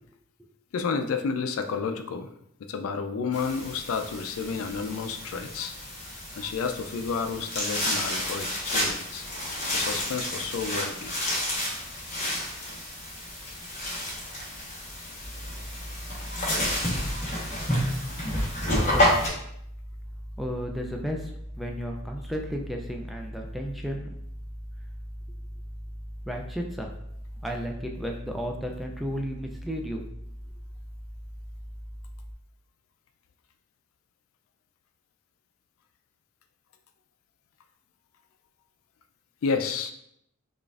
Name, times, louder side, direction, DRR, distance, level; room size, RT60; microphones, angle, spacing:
voice 1, 0.7-2.3 2.6-5.7 6.4-9.2 9.7-11.4 39.4-39.9, left 5 dB, 75° left, 7 dB, 0.4 m, -31 dB
sound 1, 3.3-19.3, left 1 dB, 35° left, 1.1 m, -30 dB
sound 2, 15.2-32.3, equal, 30° right, 0.9 m, -40 dB
voice 2, 18.8-19.1 20.4-24.1 26.2-26.9 27.4-30.0, equal, ahead, 1 dB, 0.3 m, -34 dB
4.9 x 2.5 x 2.4 m, 0.74 s
head